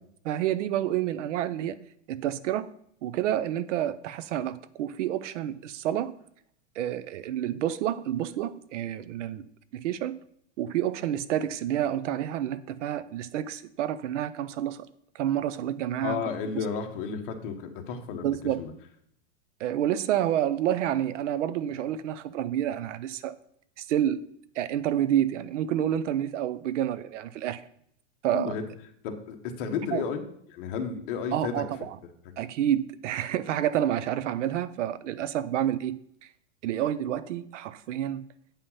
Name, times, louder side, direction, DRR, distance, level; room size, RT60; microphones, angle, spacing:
voice 1, 0.2-1.8 2.1-2.7 3.0-6.1 6.8-9.5 9.7-10.2 10.6-14.9 15.1-16.2 16.5-16.6 18.2-18.6 19.6-23.4 23.8-24.2 24.6-27.7 28.2-28.5 29.9-30.0 31.3-32.0 32.4-36.0 36.6-38.3, right 11 dB, 75° right, 16 dB, 0.7 m, -29 dB
voice 2, 16.0-18.7 28.3-28.6 29.0-30.2 30.5-31.6, left 6 dB, 45° left, 5 dB, 1.2 m, -32 dB
8.7 x 5.6 x 5.6 m, 0.68 s
supercardioid pair, 170°, 36 cm